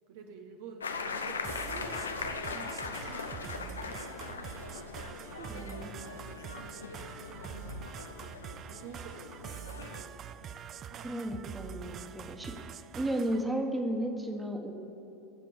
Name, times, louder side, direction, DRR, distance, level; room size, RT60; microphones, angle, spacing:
voice 1, 0.1-11.3 12.5-12.6, right 4 dB, 60° right, 4 dB, 1.0 m, -51 dB
sound 1, 0.8-10.0, left 5 dB, 75° left, 0.7 m, -40 dB
sound 2, 1.4-13.4, right 8 dB, 35° right, 0.5 m, -45 dB
voice 2, 5.5-5.9 11.0-12.5 12.9-14.7, right 1 dB, 15° right, 4 dB, 1.5 m, -33 dB
20.5 x 7.6 x 5.2 m, 2.9 s
figure-of-eight pair, 75°, 0 cm